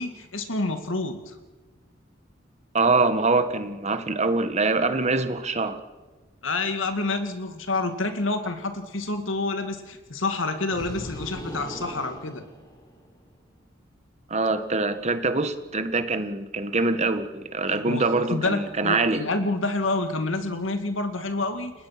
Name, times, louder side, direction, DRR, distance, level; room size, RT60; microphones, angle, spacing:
voice 1, 0.0-1.4 6.4-12.4 17.7-21.7, left 2 dB, 80° left, 7 dB, 2.2 m, -28 dB
voice 2, 2.7-5.8 14.3-19.2, right 3 dB, 35° right, 9 dB, 1.5 m, -24 dB
sound 1, 10.7-13.2, equal, 20° left, 4.4 m, -39 dB
29.5 x 19.5 x 6.0 m, 1.3 s
head